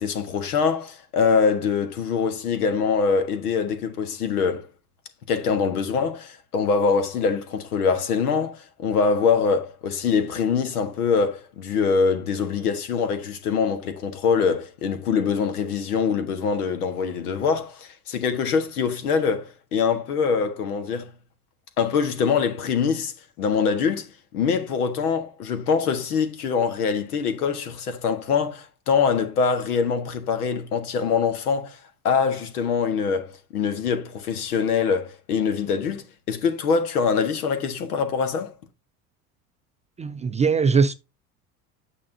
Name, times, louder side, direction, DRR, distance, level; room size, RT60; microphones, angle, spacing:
voice 1, 0.0-4.7 5.3-21.1 21.8-31.8 32.0-38.5, left 5 dB, 80° left, 1.6 m, -24 dB
voice 2, 40.0-40.9, right 5 dB, 15° right, 0.4 m, -20 dB
8.6 x 6.1 x 2.7 m
hypercardioid pair, 75°, 45 cm